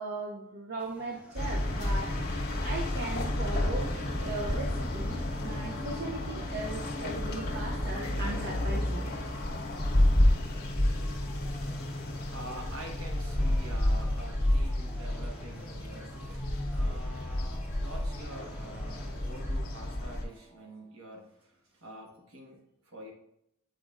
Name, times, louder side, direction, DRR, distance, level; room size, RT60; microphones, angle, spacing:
voice 1, 0.0-2.3 2.6-9.1, right 2 dB, 50° right, 0 dB, 0.6 m, -38 dB
sound 1, 0.8-19.6, equal, 5° right, 0.8 m, -52 dB
sound 2, 1.4-20.2, left 1 dB, 50° left, 1.2 m, -30 dB
sound 3, 5.0-21.0, right 1 dB, 15° left, 1.3 m, -55 dB
voice 2, 11.6-22.6 22.8-23.1, right 1 dB, 70° right, 1 dB, 1.3 m, -47 dB
7.9 x 5.0 x 2.5 m, 0.77 s
head